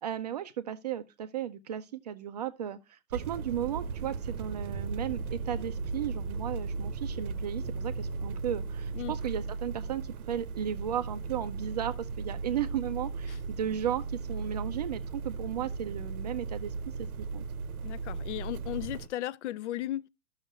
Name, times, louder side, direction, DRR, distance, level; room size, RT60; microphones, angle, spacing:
voice 1, 0.0-10.0 10.3-17.1 17.3-17.4, right 10 dB, 30° right, 0.4 m, -35 dB
sound 1, 3.1-19.1, right 4 dB, 80° right, 0.8 m, -36 dB
voice 2, 17.8-20.1, left 14 dB, 55° left, 0.5 m, -35 dB
12.5 x 6.4 x 2.3 m
hypercardioid pair, 135°, 43 cm